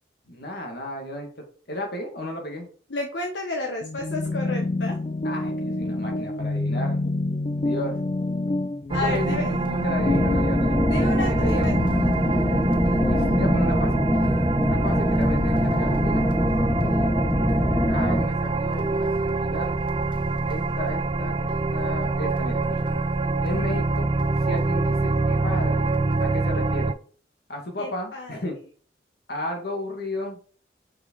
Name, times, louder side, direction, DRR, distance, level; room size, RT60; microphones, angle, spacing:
voice 1, 0.3-2.7 5.2-7.0 7.6-8.0 8.9-10.8 11.3-11.7 13.0-14.1 14.7-16.3 17.8-19.8 20.5-22.9 23.4-24.1 24.4-25.9 26.2-27.0 27.5-28.6 29.3-30.4, left 1 dB, 60° left, 1 dB, 2.4 m, -34 dB
voice 2, 2.9-5.0 8.9-9.5 10.9-11.8 27.8-28.4, left 2 dB, 75° left, 1 dB, 1.1 m, -31 dB
sound 1, 3.8-13.7, left 2 dB, 35° left, 0.4 m, -28 dB
sound 2, 8.9-26.9, right 3 dB, 30° right, 0.4 m, -26 dB
sound 3, 10.0-18.3, equal, 5° left, 0.9 m, -23 dB
6.5 x 5.7 x 4.7 m, 0.43 s
head